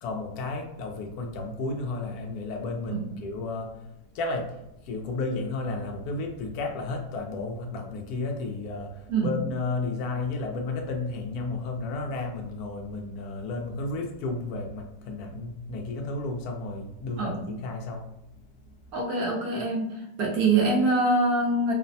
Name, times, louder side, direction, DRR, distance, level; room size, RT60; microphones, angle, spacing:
voice 1, 0.0-3.8 4.1-18.1, left 3 dB, 70° left, 3 dB, 0.9 m, -32 dB
voice 2, 18.9-21.7, right 2 dB, 70° right, -2 dB, 0.9 m, -24 dB
3.1 x 2.0 x 2.5 m, 0.87 s
omnidirectional pair, 2.0 m